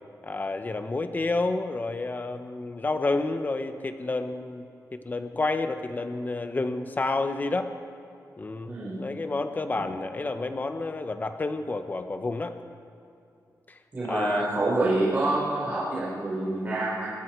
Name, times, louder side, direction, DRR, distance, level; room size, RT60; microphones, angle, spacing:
voice 1, 0.2-7.7 8.4-12.6 13.7-13.8 14.1-14.5, left 3 dB, 30° left, 8 dB, 1.2 m, -30 dB
voice 2, 8.6-9.0 9.7-9.9 13.9-17.1, right 2 dB, 30° right, -8 dB, 5.0 m, -27 dB
27.5 x 22.0 x 4.7 m, 2.6 s
wide cardioid pair, 145°, 6 cm